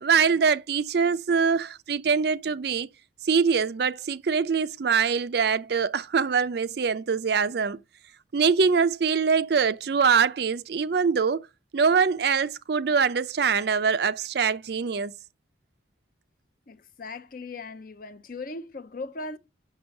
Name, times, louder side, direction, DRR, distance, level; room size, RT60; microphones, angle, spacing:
voice 1, 0.0-2.9 3.2-7.8 8.3-11.5 11.7-15.1, right 6 dB, 55° right, 0.4 m, -23 dB
voice 2, 16.7-19.4, left 3 dB, 45° left, 0.6 m, -38 dB
5.9 x 5.4 x 6.9 m
head